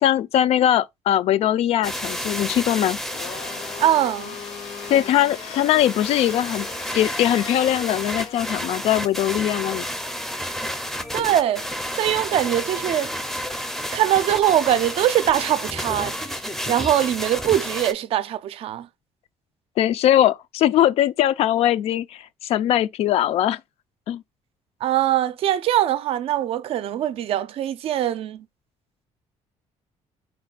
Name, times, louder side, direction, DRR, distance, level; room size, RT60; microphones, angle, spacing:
voice 1, 0.0-3.0 4.9-6.7 6.9-9.9 19.8-23.6 24.1-24.2, left 12 dB, 60° left, 0.4 m, -21 dB
sound 1, 1.8-17.9, equal, ahead, 0.5 m, -31 dB
Domestic sounds home sounds, 3.0-8.6, left 8 dB, 85° left, 1.0 m, -39 dB
voice 2, 3.8-4.3 11.1-11.6 11.9-13.1 13.9-16.4 16.7-18.9 24.8-28.4, right 12 dB, 55° right, 0.4 m, -22 dB
4.3 x 2.2 x 4.0 m
cardioid pair, 160°, 12 cm